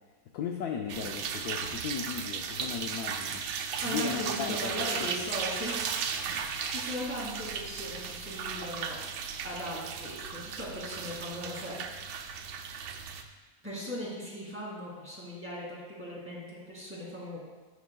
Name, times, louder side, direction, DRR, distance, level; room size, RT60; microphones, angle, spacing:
voice 1, 0.3-3.4 3.7-4.7 5.0-5.1, left 7 dB, 70° left, 2 dB, 1.0 m, -36 dB
sound 1, 0.9-13.2, right 6 dB, 75° right, 1.2 m, -36 dB
voice 2, 3.8-5.9 6.6-9.0 9.4-10.2 10.4-11.8 13.6-17.4, equal, 5° right, -7 dB, 2.3 m, -38 dB
11.5 x 7.1 x 2.3 m, 1.3 s
omnidirectional pair, 2.0 m